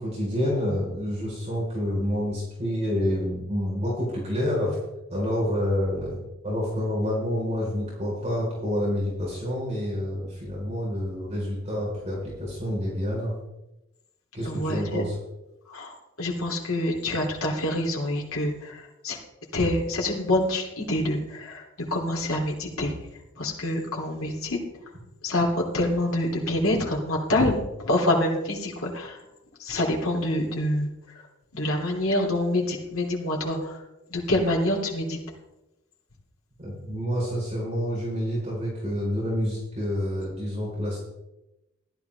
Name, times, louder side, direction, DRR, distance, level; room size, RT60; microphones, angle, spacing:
voice 1, 0.0-4.8 5.1-13.3 14.3-15.2 36.6-41.0, equal, 30° right, -5 dB, 4.4 m, -28 dB
voice 2, 14.4-15.0 15.7-19.2 19.5-21.6 21.9-22.9 23.4-24.6 25.2-29.2 29.6-30.9 31.5-33.8 34.1-35.2, left 1 dB, 80° left, -1 dB, 3.0 m, -26 dB
14.5 x 11.5 x 3.5 m, 0.95 s
head